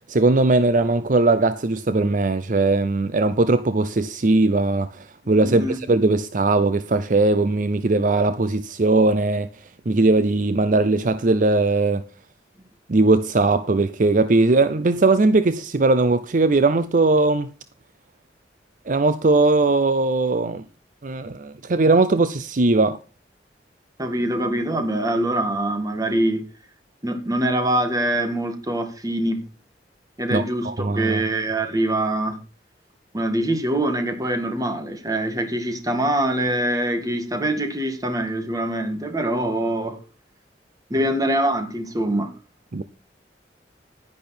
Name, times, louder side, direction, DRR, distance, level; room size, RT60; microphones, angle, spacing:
voice 1, 0.1-12.0 12.9-17.5 18.9-20.6 21.0-23.0 30.3-31.2 42.7-42.8, right 2 dB, 50° right, 0.6 m, -19 dB
voice 2, 5.2-5.8 24.0-26.4 27.0-29.4 30.2-32.4 33.1-40.0 40.9-42.3, right 1 dB, 20° right, 2.2 m, -24 dB
11.0 x 10.5 x 4.3 m
head